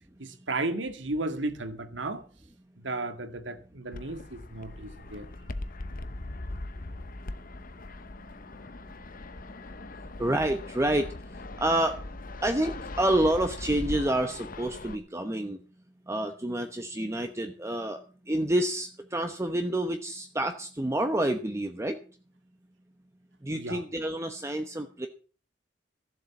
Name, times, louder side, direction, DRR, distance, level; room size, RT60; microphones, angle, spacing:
voice 1, 0.2-2.2 2.8-5.2 23.5-23.8, right 2 dB, 85° right, 1.9 m, -34 dB
Fixed-wing aircraft airplane, 3.9-15.0, left 2 dB, 50° left, 0.9 m, -40 dB
voice 2, 10.2-11.1 11.6-12.0 12.4-15.6 16.1-18.0 18.3-22.0 23.4-25.1, right 1 dB, 15° right, 1.0 m, -28 dB
14.5 x 7.6 x 7.1 m
head